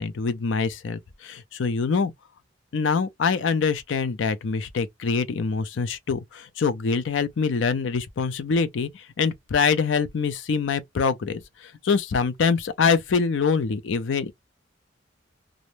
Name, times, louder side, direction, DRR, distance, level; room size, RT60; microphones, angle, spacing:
voice 1, 0.0-2.1 2.7-14.3, left 5 dB, 75° left, 0.4 m, -25 dB
2.5 x 2.1 x 3.0 m
head